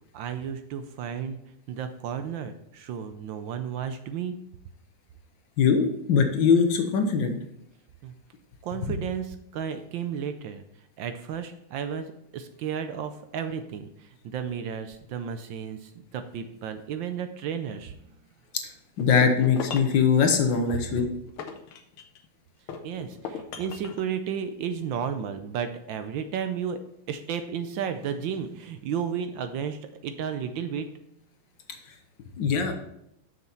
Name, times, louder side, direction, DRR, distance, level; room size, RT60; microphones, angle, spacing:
voice 1, 0.1-1.4 1.7-4.4 8.0-8.1 8.6-10.6 11.0-18.0 22.8-26.8 27.1-30.9, right 7 dB, 75° right, 9 dB, 1.2 m, -33 dB
voice 2, 5.6-7.4 18.5-18.6 19.0-21.1 32.4-32.7, left 6 dB, 65° left, 6 dB, 1.5 m, -22 dB
sound 1, 19.0-20.0 20.7-22.2 22.7-24.1, left 6 dB, 85° left, 1.7 m, -38 dB
6.9 x 6.6 x 4.3 m, 0.77 s
omnidirectional pair, 2.3 m